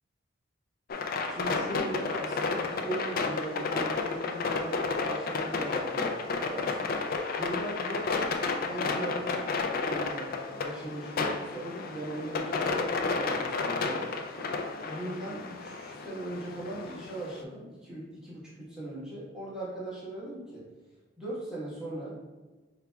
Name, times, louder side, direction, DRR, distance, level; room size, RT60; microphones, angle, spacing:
sound 1, 0.9-17.4, left 4 dB, 50° left, 0.4 m, -32 dB
voice 1, 1.3-6.9 7.4-14.1 14.8-20.6 21.2-22.1, right 1 dB, 5° right, -9 dB, 1.1 m, -39 dB
4.8 x 3.3 x 2.2 m, 1.2 s
head